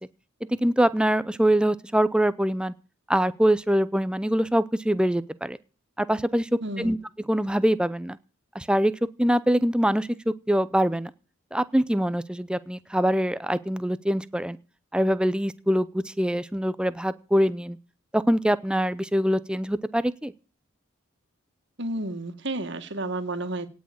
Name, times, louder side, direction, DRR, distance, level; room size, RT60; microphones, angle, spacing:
voice 1, 0.6-2.7 3.1-5.6 6.0-7.0 7.3-8.2 8.5-11.1 11.5-14.6 14.9-17.8 18.1-20.3, equal, 5° right, 16 dB, 0.6 m, -24 dB
voice 2, 6.6-6.9 21.8-23.7, right 2 dB, 60° right, 8 dB, 2.0 m, -31 dB
18.0 x 6.3 x 8.7 m, 0.37 s
head